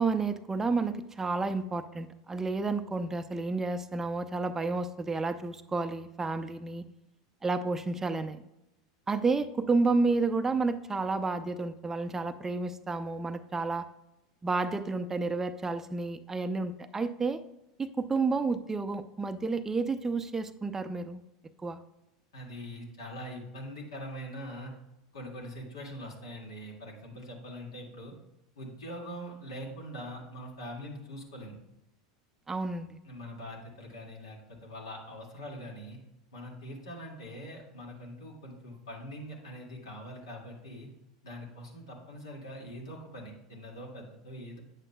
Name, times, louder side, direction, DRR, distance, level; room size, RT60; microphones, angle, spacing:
voice 1, 0.0-6.9 7.4-8.4 9.1-13.9 14.4-17.4 17.8-21.2 21.6-21.8 32.5-33.0, right 3 dB, 15° right, 10 dB, 0.5 m, -30 dB
voice 2, 22.3-24.7 25.1-28.1 28.6-31.6 33.0-36.0 36.3-40.9 41.2-44.6, equal, 80° left, -1 dB, 2.0 m, -43 dB
9.0 x 7.6 x 2.2 m, 0.90 s
hypercardioid pair, 90°, 2 cm